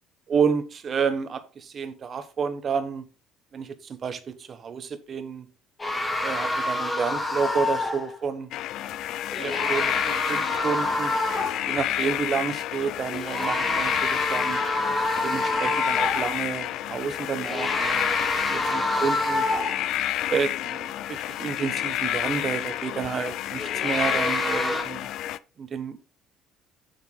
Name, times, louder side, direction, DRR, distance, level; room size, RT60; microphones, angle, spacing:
voice 1, 0.3-3.0 3.5-5.5 6.2-8.5 9.4-11.1 11.7-14.6 15.2-18.1 18.5-19.5 20.3-25.1 25.6-26.0, right 6 dB, 40° right, 1.2 m, -30 dB
sound 1, 5.8-8.2 9.3-11.8 13.1-16.4 17.4-20.0 23.6-24.8, left 2 dB, 15° left, 2.5 m, -27 dB
sound 2, 8.5-25.4, left 13 dB, 65° left, 0.4 m, -30 dB
7.2 x 7.1 x 3.9 m
cardioid pair, 120°, 0 cm